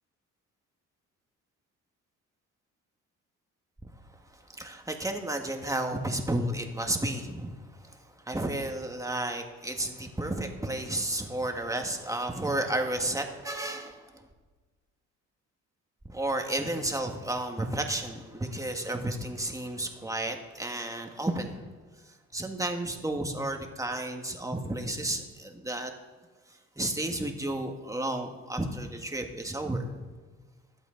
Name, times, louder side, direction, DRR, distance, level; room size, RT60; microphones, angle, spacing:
voice 1, 4.6-7.5 8.3-14.0 16.1-21.6 22.3-25.9 26.8-30.1, right 1 dB, 10° right, 3 dB, 1.7 m, -32 dB
23.0 x 8.2 x 3.9 m, 1.3 s
cardioid pair, 90°, 30 cm